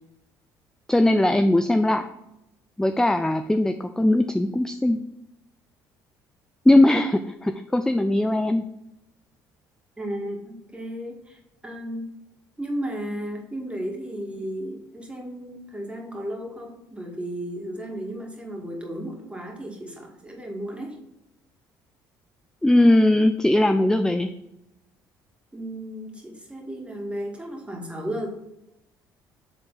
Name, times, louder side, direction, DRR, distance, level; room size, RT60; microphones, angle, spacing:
voice 1, 0.9-2.1 2.8-5.0 6.7-8.7 22.6-24.3, left 1 dB, 5° left, 8 dB, 0.4 m, -20 dB
voice 2, 10.0-12.1 12.6-21.0 25.5-28.3, right 1 dB, 10° right, 0 dB, 2.2 m, -34 dB
7.8 x 3.7 x 4.1 m, 0.87 s
hypercardioid pair, 60°, 10 cm